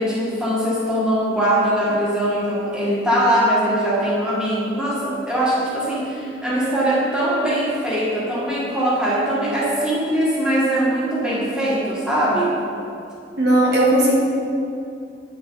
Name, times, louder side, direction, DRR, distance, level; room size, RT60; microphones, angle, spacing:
voice 1, 0.0-12.6, right 1 dB, 5° right, -8 dB, 1.8 m, -21 dB
voice 2, 13.4-14.2, right 1 dB, 60° right, -3 dB, 1.3 m, -16 dB
8.9 x 7.0 x 4.0 m, 2.5 s
head